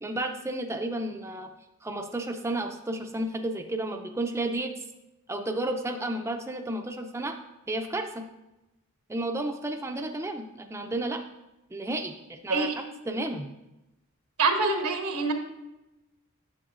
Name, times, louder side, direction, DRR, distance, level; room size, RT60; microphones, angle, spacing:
voice 1, 0.0-1.5 1.8-4.7 5.3-7.4 7.7-8.3 9.1-11.2 11.7-12.7 13.1-13.5, right 1 dB, 10° right, 4 dB, 0.4 m, -32 dB
voice 2, 14.4-15.3, right 3 dB, 85° right, 4 dB, 1.1 m, -25 dB
9.9 x 6.9 x 2.4 m, 0.95 s
head